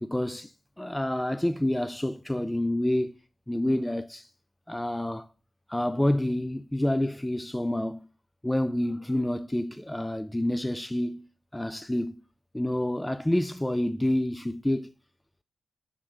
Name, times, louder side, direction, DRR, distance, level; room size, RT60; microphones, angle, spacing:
voice 1, 0.0-3.1 3.5-4.3 4.7-5.3 5.7-8.0 8.4-11.3 11.5-12.2 12.5-14.9, left 1 dB, 10° left, 0.4 m, -28 dB
6.2 x 3.6 x 6.0 m
supercardioid pair, 45°, 0 cm